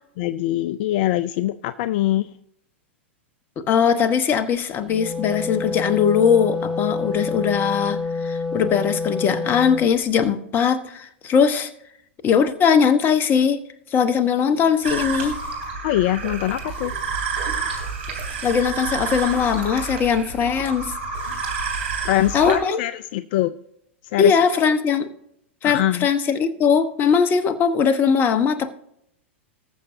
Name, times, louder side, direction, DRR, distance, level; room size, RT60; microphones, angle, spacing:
voice 1, 0.2-2.3 15.8-16.9 22.0-23.5 24.0-24.4 25.6-26.1, left 14 dB, 55° left, 0.4 m, -23 dB
voice 2, 3.7-11.7 12.2-13.6 13.9-15.4 18.4-20.9 22.3-22.8 24.2-25.1 25.6-28.7, left 7 dB, 30° left, 1.1 m, -20 dB
Wind instrument woodwind instrument, 4.7-9.9, left 4 dB, ahead, 1.9 m, -27 dB
sound 1, 14.8-22.6, right 5 dB, 70° right, 3.2 m, -29 dB
20.5 x 6.9 x 2.6 m
hypercardioid pair, 100°, 7 cm